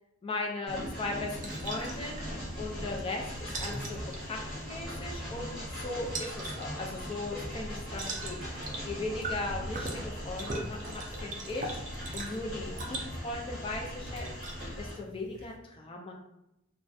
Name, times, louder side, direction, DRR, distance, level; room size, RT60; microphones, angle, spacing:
voice 1, 0.2-3.3 3.6-11.8 12.1-14.3 14.8-16.1, left 2 dB, 25° left, 0 dB, 0.3 m, -38 dB
Train, 0.7-14.9, equal, ahead, 1.1 m, -40 dB
sound 1, 0.7-15.6, right 2 dB, 40° right, 0.4 m, -42 dB
2.3 x 2.1 x 2.5 m, 0.86 s
head